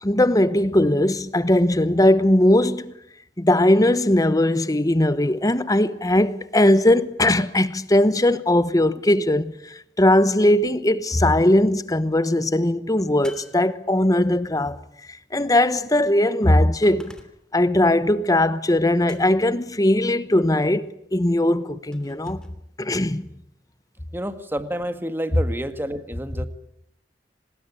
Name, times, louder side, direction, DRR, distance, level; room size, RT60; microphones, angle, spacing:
voice 1, 0.0-2.9 3.4-14.8 15.3-17.1 17.5-22.4 22.8-23.3, left 1 dB, 20° left, 1.0 m, -19 dB
sound 1, 13.2-14.3 16.8-17.6 19.0-19.6 21.9-22.6, left 1 dB, 5° left, 2.8 m, -47 dB
voice 2, 24.1-26.5, equal, 15° right, 1.8 m, -29 dB
26.5 x 20.0 x 9.9 m
head